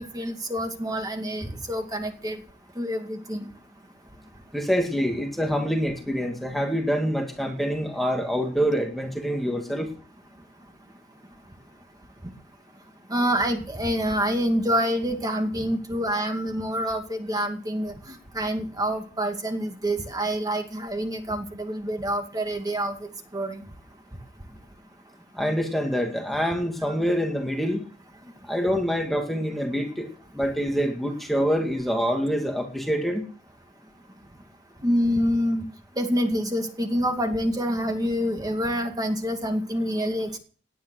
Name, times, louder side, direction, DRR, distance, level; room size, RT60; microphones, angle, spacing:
voice 1, 0.0-2.4 2.8-3.5 13.1-17.9 18.3-22.9 23.3-23.6 34.8-35.6 36.0-40.4, equal, 20° right, 5 dB, 2.3 m, -27 dB
voice 2, 4.5-9.9 25.3-27.8 28.5-30.1 30.3-33.3, equal, ahead, 2 dB, 2.0 m, -26 dB
19.0 x 10.5 x 6.4 m, 0.42 s
head